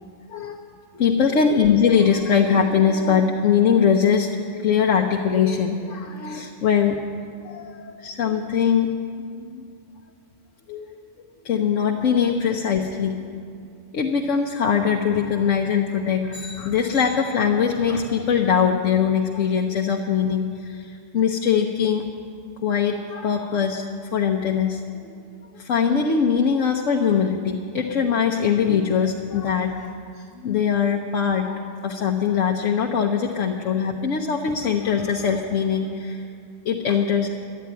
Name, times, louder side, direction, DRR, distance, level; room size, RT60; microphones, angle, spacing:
voice 1, 0.9-7.0 7.4-8.9 9.4-9.6 10.7-10.9 11.4-13.2 13.9-22.0 22.6-23.9 24.1-25.1 25.5-30.0 30.4-36.2 36.6-37.3, left 7 dB, 85° left, 2 dB, 1.2 m, -22 dB
12.0 x 10.5 x 9.4 m, 2.3 s
omnidirectional pair, 1.3 m